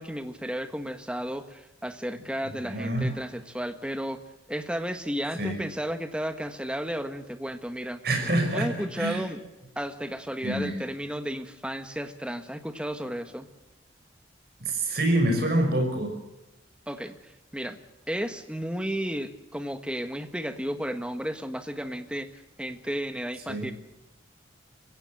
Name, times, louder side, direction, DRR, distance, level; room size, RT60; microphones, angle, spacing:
voice 1, 0.0-4.2 4.5-8.0 8.5-9.4 9.7-13.5 16.9-17.8 18.1-23.7, equal, 5° right, 8 dB, 1.4 m, -33 dB
voice 2, 2.5-3.1 5.4-5.6 8.0-8.7 9.0-9.2 10.4-10.7 14.6-16.1 23.5-23.7, right 1 dB, 55° right, 4 dB, 5.8 m, -26 dB
25.0 x 16.0 x 7.6 m, 0.98 s
head